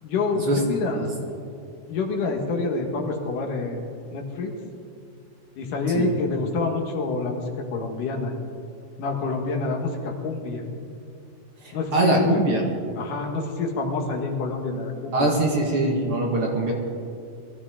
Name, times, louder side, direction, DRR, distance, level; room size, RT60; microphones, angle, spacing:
voice 1, 0.0-1.1 1.9-3.8 4.1-4.5 5.6-7.4 7.7-8.3 9.0-10.6 11.7-12.4 13.0-15.3, left 3 dB, 80° left, 1 dB, 3.1 m, -27 dB
voice 2, 11.6-12.6 15.1-16.7, right 2 dB, 50° right, -1 dB, 2.2 m, -23 dB
22.0 x 14.5 x 3.8 m, 2.4 s
omnidirectional pair, 3.7 m